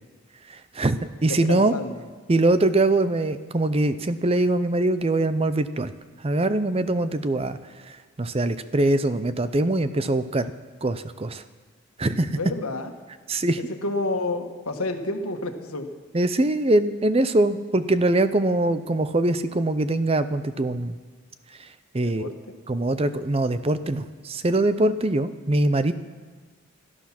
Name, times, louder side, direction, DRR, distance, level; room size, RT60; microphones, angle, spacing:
voice 1, 0.5-1.7 2.3-5.9 6.2-7.6 7.9-10.5 10.8-11.4 12.0-12.4 13.3-13.6 16.1-21.0 21.6-21.7 21.9-22.3 22.7-25.9, right 2 dB, 25° right, 12 dB, 0.5 m, -23 dB
voice 2, 1.3-1.9 12.3-12.9 13.8-15.9 22.0-22.6, left 2 dB, 85° left, 5 dB, 1.5 m, -29 dB
17.5 x 12.5 x 5.9 m, 1.4 s
head